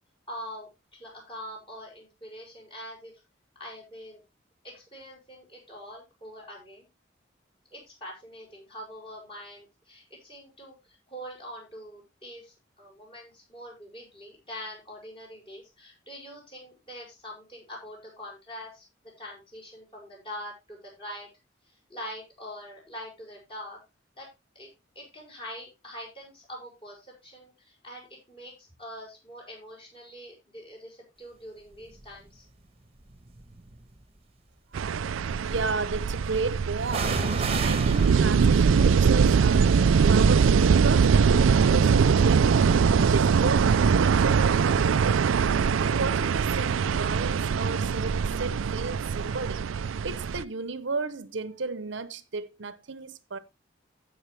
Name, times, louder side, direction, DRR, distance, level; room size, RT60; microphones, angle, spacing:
voice 1, 0.3-3.2 3.6-4.2 4.6-6.9 7.7-21.3 21.6-23.8 24.1-24.3 24.5-24.7 24.9-32.5, equal, 25° left, 6.5 m, -44 dB
sound 1, 31.9-32.3 33.0-34.0 36.9-44.5 44.8-44.9, right 3 dB, 30° right, 1.2 m, -37 dB
sound 2, 34.7-50.4, right 6 dB, 90° right, 0.4 m, -22 dB
voice 2, 35.4-39.8 40.1-42.7 43.0-45.4 45.8-53.4, right 4 dB, 70° right, 0.8 m, -34 dB
15.0 x 6.6 x 3.3 m
head